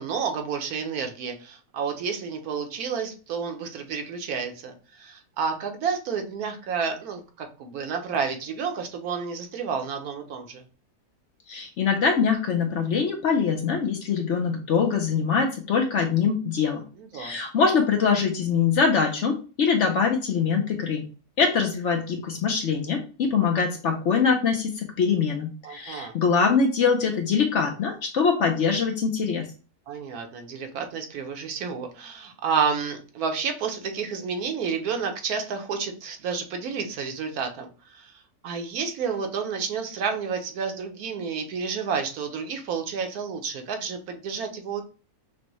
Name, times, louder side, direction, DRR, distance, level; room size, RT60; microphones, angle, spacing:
voice 1, 0.0-10.6 17.0-17.3 25.6-26.1 29.9-38.1 38.4-44.8, right 6 dB, 75° right, 5 dB, 1.2 m, -30 dB
voice 2, 11.5-16.8 17.1-21.0 21.4-29.5, left 5 dB, 60° left, 3 dB, 0.8 m, -23 dB
6.1 x 2.1 x 3.0 m, 0.37 s
omnidirectional pair, 1.6 m